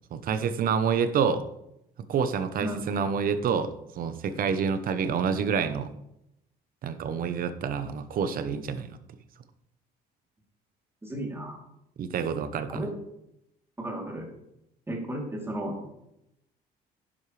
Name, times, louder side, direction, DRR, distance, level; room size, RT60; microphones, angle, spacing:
voice 1, 0.1-1.4 2.1-5.9 6.8-9.0 12.0-12.8, right 6 dB, 60° right, 11 dB, 1.0 m, -28 dB
voice 2, 11.0-11.6 12.7-12.9 13.8-14.3 14.9-15.9, right 1 dB, 15° right, -1 dB, 3.3 m, -34 dB
11.0 x 10.5 x 3.4 m, 0.83 s
cardioid pair, 110°, 17 cm